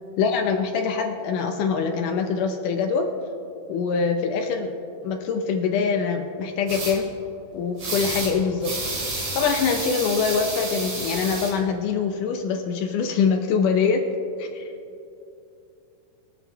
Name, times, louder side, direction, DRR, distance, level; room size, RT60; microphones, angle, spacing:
voice 1, 0.2-3.1 3.7-4.7 5.0-7.1 7.5-8.8 9.1-14.0 14.4-14.6, left 5 dB, 75° left, 4 dB, 2.3 m, -24 dB
sound 1, 6.7-6.9 7.8-8.3 8.6-11.5, right 2 dB, 55° right, 3.6 m, -30 dB
22.5 x 7.7 x 3.5 m, 2.7 s
omnidirectional pair, 3.8 m